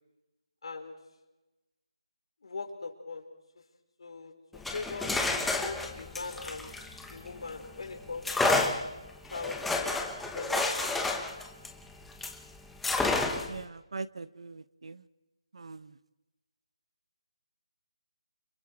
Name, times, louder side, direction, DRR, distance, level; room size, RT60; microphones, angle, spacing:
voice 1, 0.6-0.9 2.4-3.3 4.0-4.3 4.7-5.1 5.6-6.7 7.1-8.6 9.2-10.0 10.3-10.9, left 4 dB, 60° left, 4 dB, 4.7 m, -40 dB
sound 1, 4.5-7.6 8.2-12.4 12.8-13.6, left 3 dB, 5° left, 1.0 m, -30 dB
voice 2, 13.5-15.0 15.5-15.9, right 4 dB, 65° right, 15 dB, 1.1 m, -41 dB
29.5 x 26.5 x 4.7 m, 1.1 s
figure-of-eight pair, 165°, 3 cm